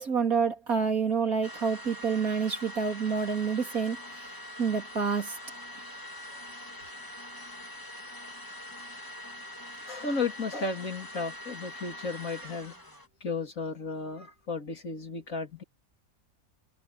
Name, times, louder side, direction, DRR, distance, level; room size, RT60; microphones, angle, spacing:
voice 1, 0.0-4.0 4.6-5.4, right 5 dB, 75° right, 4.0 m, -28 dB
sound 1, 1.4-13.1, left 1 dB, 15° left, 2.3 m, -44 dB
voice 2, 9.9-12.8 13.2-15.6, left 4 dB, 65° left, 3.3 m, -34 dB
omnidirectional pair, 1.5 m